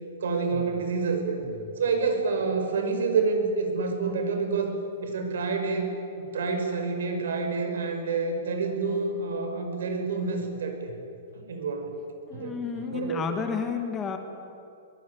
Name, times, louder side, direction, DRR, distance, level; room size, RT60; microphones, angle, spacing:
voice 1, 0.2-1.4 1.8-4.7 5.0-5.9 6.2-10.9 11.3-11.9 12.3-13.3, right 4 dB, 75° right, 5 dB, 5.6 m, -28 dB
voice 2, 12.3-14.2, left 6 dB, 10° left, 6 dB, 1.5 m, -32 dB
23.0 x 22.0 x 9.9 m, 2.6 s
hypercardioid pair, 180°, 0 cm